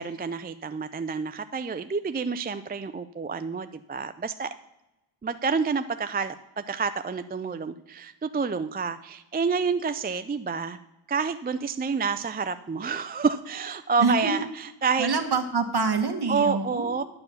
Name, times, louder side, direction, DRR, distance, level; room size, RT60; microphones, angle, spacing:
voice 1, 0.0-4.5 5.2-10.8 11.1-15.1 16.3-17.0, right 5 dB, 20° right, 10 dB, 0.4 m, -28 dB
voice 2, 14.0-14.3 15.0-17.0, right 4 dB, 50° right, 5 dB, 1.5 m, -26 dB
11.0 x 6.9 x 7.0 m, 0.96 s
wide cardioid pair, 85°, 49 cm